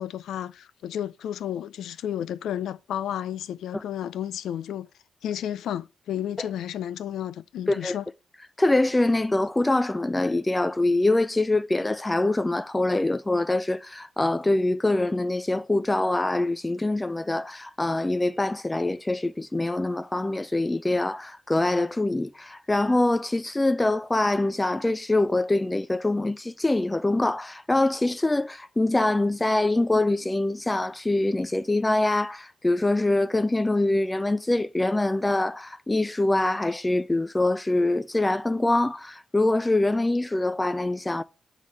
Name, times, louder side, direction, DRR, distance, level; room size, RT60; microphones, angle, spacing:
voice 1, 0.0-4.9 5.2-8.0, left 10 dB, 85° left, 0.4 m, -32 dB
voice 2, 8.6-41.2, left 2 dB, 15° left, 0.4 m, -24 dB
8.1 x 3.8 x 6.2 m
cardioid pair, 80°, 0 cm